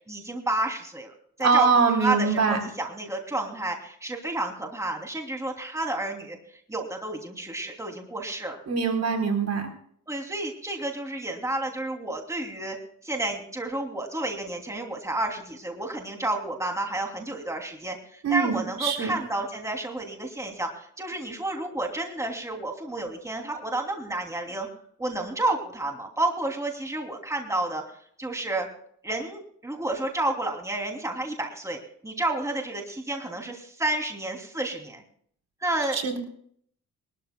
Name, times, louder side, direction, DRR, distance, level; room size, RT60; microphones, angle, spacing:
voice 1, 0.1-1.1 1.4-1.7 2.0-8.6 10.1-12.8 13.0-24.7 25.0-27.8 28.2-28.7 29.0-31.8 32.0-35.0 35.6-36.0, right 2 dB, 10° right, 2 dB, 2.9 m, -30 dB
voice 2, 1.4-2.6 8.7-9.7 18.2-19.2 35.9-36.2, right 5 dB, 50° right, 2 dB, 3.8 m, -23 dB
23.0 x 13.0 x 2.3 m, 0.63 s
cardioid pair, 70°, 33 cm